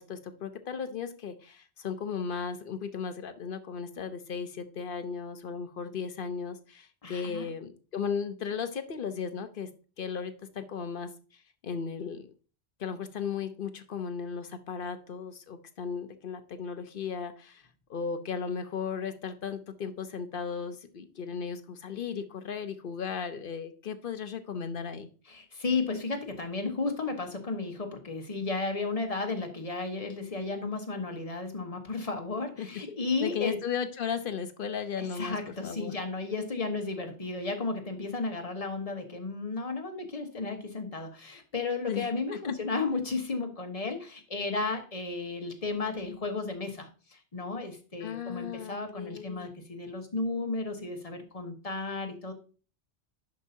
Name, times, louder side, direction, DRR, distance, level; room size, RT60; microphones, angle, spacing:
voice 1, 0.0-9.7 10.0-11.1 11.6-12.3 12.8-17.6 17.9-25.1 32.6-32.8 33.2-36.0 41.9-42.6 48.0-49.5, left 6 dB, 55° left, 10 dB, 0.9 m, -36 dB
voice 2, 7.0-7.5 25.3-33.6 35.0-52.3, left 3 dB, 35° left, 4 dB, 1.3 m, -33 dB
11.0 x 5.4 x 2.8 m, 0.37 s
omnidirectional pair, 1.1 m